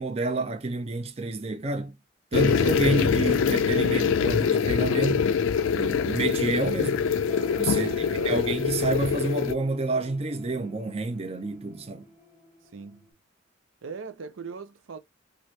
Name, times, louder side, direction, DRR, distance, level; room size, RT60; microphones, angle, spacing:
voice 1, 0.0-1.9 2.3-5.3 5.7-7.1 7.5-12.1, right 3 dB, 30° right, 0.5 m, -29 dB
sound 1, 2.3-9.5, left 6 dB, 85° left, 0.3 m, -24 dB
sound 2, 7.3-13.1, left 2 dB, ahead, 1.1 m, -46 dB
voice 2, 7.8-8.3 12.7-13.1 13.8-15.0, right 5 dB, 90° right, 0.5 m, -39 dB
2.8 x 2.5 x 3.1 m
head